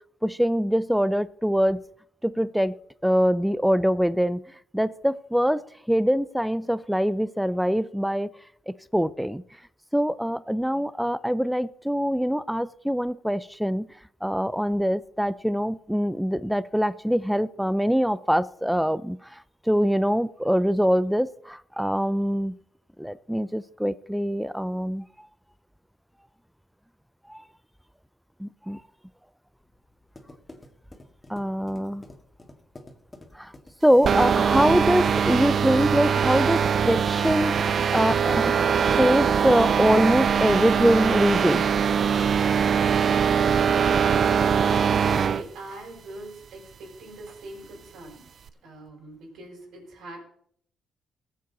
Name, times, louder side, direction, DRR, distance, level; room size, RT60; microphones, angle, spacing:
voice 1, 0.2-1.8 2.2-2.7 3.0-4.4 4.7-5.6 5.9-8.3 8.7-9.4 9.9-13.9 14.2-19.4 19.7-22.5 23.0-25.1 27.3-27.4 28.4-28.8 31.3-32.0 33.3-33.5 33.8-38.5 38.8-41.7, equal, ahead, 17 dB, 0.5 m, -24 dB
sound 1, 29.6-39.4, left 2 dB, 20° left, 2.1 m, -47 dB
sound 2, 34.0-45.4, right 7 dB, 50° right, 0.5 m, -22 dB
voice 2, 45.1-48.3 48.6-50.2, right 2 dB, 75° right, -1 dB, 6.3 m, -42 dB
19.5 x 7.7 x 4.1 m, 0.64 s
cardioid pair, 90°, 0 cm